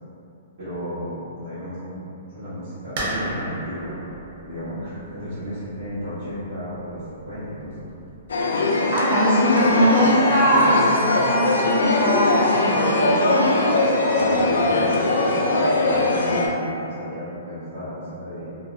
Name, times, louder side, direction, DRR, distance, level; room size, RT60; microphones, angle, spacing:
voice 1, 0.6-3.9 4.4-7.9 14.2-18.6, equal, 85° right, -15 dB, 0.9 m, -34 dB
sound 1, 3.0-8.4, right 1 dB, 45° right, 0.7 m, -35 dB
sound 2, 8.3-16.5, left 2 dB, 90° left, 0.3 m, -21 dB
voice 2, 8.9-13.5, equal, 70° right, -10 dB, 1.3 m, -20 dB
2.5 x 2.0 x 2.5 m, 2.7 s
hypercardioid pair, 155°, 0 cm